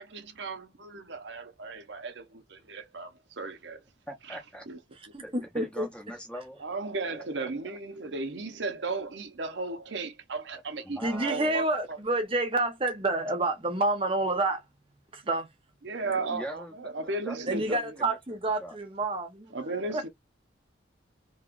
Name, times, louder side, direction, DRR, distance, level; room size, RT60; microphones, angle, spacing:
voice 1, 0.0-3.8 4.3-4.4 4.7-4.8 6.6-12.0 15.8-17.8 19.5-20.1, right 3 dB, 70° right, 0.8 m, -35 dB
voice 2, 4.1-4.7 5.2-6.6 7.1-7.8 10.8-11.6 16.2-17.4 17.6-18.2 18.6-18.8 19.8-20.0, equal, 5° left, 0.8 m, -42 dB
voice 3, 5.1-5.9 11.0-14.6 15.1-15.5 17.5-19.5 19.9-20.1, right 2 dB, 30° right, 0.9 m, -28 dB
3.0 x 3.0 x 2.4 m
head